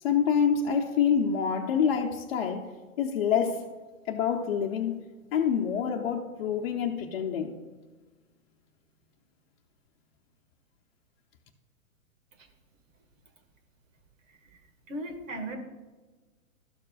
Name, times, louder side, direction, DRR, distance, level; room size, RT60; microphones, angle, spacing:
voice 1, 0.0-2.7 3.0-3.7 4.1-5.0 5.3-7.5, left 7 dB, 45° left, 1 dB, 0.8 m, -26 dB
voice 2, 14.9-15.6, right 1 dB, 65° right, 4 dB, 2.0 m, -37 dB
13.0 x 6.6 x 2.4 m, 1.3 s
hypercardioid pair, 120°, 42 cm